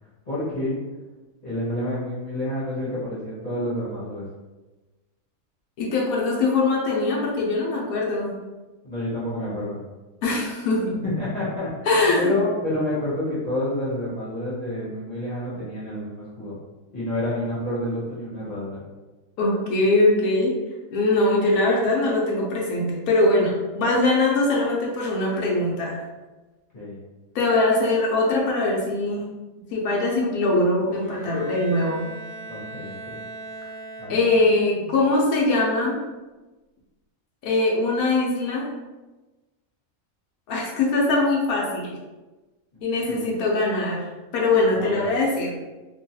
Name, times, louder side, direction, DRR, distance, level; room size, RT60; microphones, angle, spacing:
voice 1, 0.3-0.8 1.4-4.2 8.8-9.8 11.0-11.7 12.2-16.5 16.9-18.8 26.7-27.0 32.5-33.2 34.0-34.2 42.7-43.3 44.8-45.1, left 1 dB, 35° left, -11 dB, 0.8 m, -29 dB
voice 2, 5.8-8.3 10.2-11.0 11.9-12.3 19.4-20.5 20.9-26.0 27.3-29.3 29.7-32.1 34.1-36.0 37.4-38.7 40.5-41.9 42.8-44.0 44.3-45.5, left 2 dB, 90° left, -2 dB, 1.1 m, -22 dB
Bowed string instrument, 30.9-34.6, right 2 dB, 75° right, 1.2 m, -39 dB
3.0 x 2.2 x 2.7 m, 1.2 s
omnidirectional pair, 1.5 m